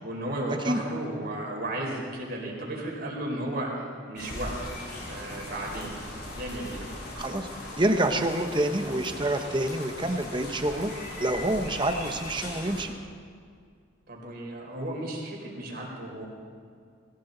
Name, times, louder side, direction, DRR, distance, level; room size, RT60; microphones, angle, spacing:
voice 1, 0.0-4.6 5.0-6.0 6.4-6.9 14.1-16.2, right 1 dB, 50° right, -2 dB, 4.0 m, -34 dB
sound 1, 4.2-12.8, left 1 dB, 50° left, 3.7 m, -39 dB
voice 2, 7.2-7.5 7.8-10.9 11.2-12.9, right 1 dB, 25° right, 6 dB, 0.9 m, -27 dB
21.5 x 16.5 x 4.0 m, 2.2 s
head